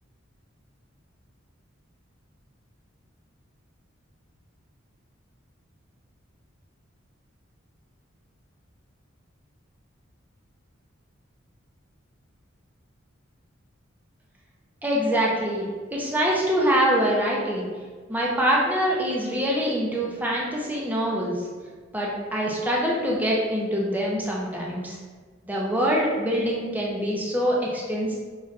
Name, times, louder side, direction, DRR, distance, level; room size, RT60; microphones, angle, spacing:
voice 1, 14.8-17.7 18.1-21.4 21.9-25.0 25.5-28.1, equal, 10° right, -4 dB, 0.5 m, -24 dB
5.3 x 3.0 x 2.5 m, 1.5 s
head